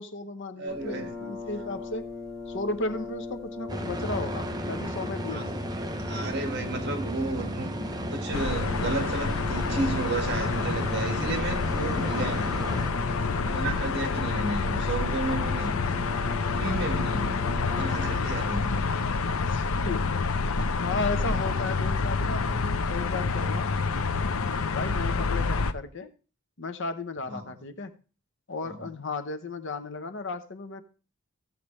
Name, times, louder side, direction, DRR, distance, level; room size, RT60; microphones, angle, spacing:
voice 1, 0.0-2.1 2.5-5.7 7.0-7.1 14.4-14.6 17.5-18.1 18.7-18.9 19.5-20.1 20.8-23.7 24.7-26.1 26.6-28.0 28.5-30.8, left 3 dB, 60° left, 0.9 m, -35 dB
voice 2, 0.6-1.2 5.3-5.5 6.0-7.8 8.1-12.6 13.4-16.1 16.5-18.7 27.3-27.5 28.6-28.9, right 2 dB, 55° right, 1.7 m, -33 dB
Brass instrument, 0.7-18.5, left 4 dB, 5° left, 3.5 m, -40 dB
sound 1, 3.7-12.9, right 1 dB, 20° right, 0.8 m, -34 dB
sound 2, 8.3-25.7, left 4 dB, 90° left, 0.7 m, -28 dB
15.0 x 7.6 x 3.2 m
head